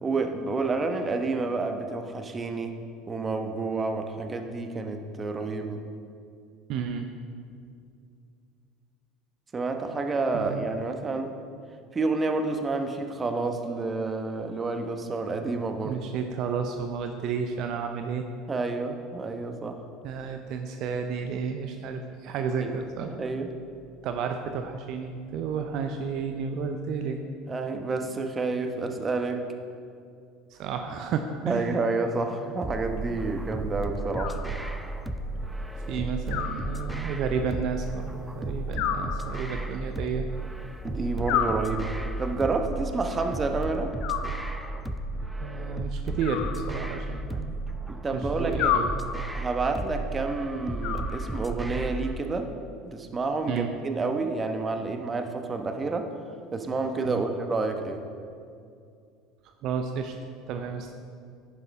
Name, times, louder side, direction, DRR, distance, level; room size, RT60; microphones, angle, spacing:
voice 1, 0.0-2.8 3.1-5.8 9.5-11.3 11.9-16.0 18.5-19.8 22.6-22.7 23.2-23.5 27.5-29.4 31.4-34.4 40.8-41.9 42.2-43.9 47.9-48.7 49.3-52.5 52.8-56.1 56.5-58.0, right 3 dB, 25° right, 6 dB, 1.0 m, -29 dB
voice 2, 6.7-7.1 10.3-10.7 15.8-18.2 20.0-23.1 24.0-27.2 30.5-31.8 35.9-40.3 45.4-47.6 48.1-48.9 53.5-53.7 57.0-57.2 59.6-60.1 60.5-60.9, right 6 dB, 55° right, 5 dB, 0.6 m, -32 dB
sound 1, 32.6-52.2, right 2 dB, 10° right, 0.6 m, -34 dB
Animal, 34.2-35.0 36.3-37.3 38.8-39.8 41.3-42.3 44.0-44.9 46.2-47.3 48.6-49.5 50.8-51.7, left 9 dB, 60° left, 0.6 m, -32 dB
11.0 x 9.5 x 3.5 m, 2.4 s
hypercardioid pair, 70°, 0 cm